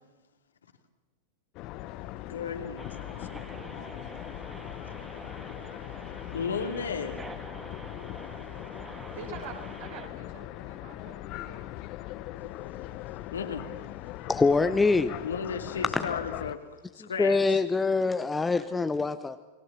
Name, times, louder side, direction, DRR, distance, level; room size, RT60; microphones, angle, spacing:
sound 1, 1.5-16.6, left 15 dB, 40° left, 1.1 m, -40 dB
voice 1, 2.3-3.4 4.9-5.0 5.3-5.6 6.3-7.2 8.4-8.5 12.4-12.5 13.3-13.9 15.2-16.6 16.9-17.6, left 6 dB, 70° left, 5 dB, 2.5 m, -35 dB
sound 2, 2.8-10.1, right 2 dB, 10° right, 2.4 m, -46 dB
voice 2, 9.2-11.9, right 5 dB, 55° right, 3 dB, 5.6 m, -45 dB
voice 3, 14.3-15.2 15.9-16.1 17.0-19.4, left 3 dB, 10° left, 10 dB, 0.8 m, -25 dB
29.5 x 21.0 x 7.3 m, 1.2 s
figure-of-eight pair, 90°, 0 cm